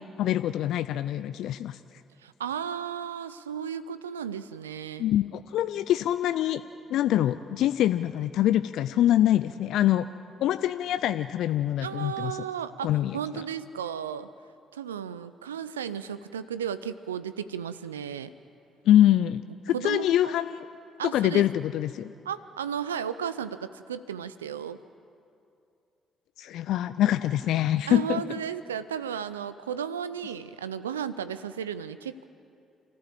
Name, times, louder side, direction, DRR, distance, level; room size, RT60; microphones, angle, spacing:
voice 1, 0.2-1.8 5.0-6.6 6.9-10.1 10.4-12.4 12.8-13.4 18.9-20.7 21.1-22.1 26.4-28.2, left 12 dB, 65° left, 12 dB, 0.4 m, -24 dB
voice 2, 2.2-5.1 11.8-14.3 14.7-18.3 19.7-20.3 21.0-21.4 22.3-24.8 27.9-32.3, right 8 dB, 90° right, 14 dB, 0.4 m, -34 dB
29.0 x 14.5 x 7.6 m, 2.5 s
hypercardioid pair, 45°, 0 cm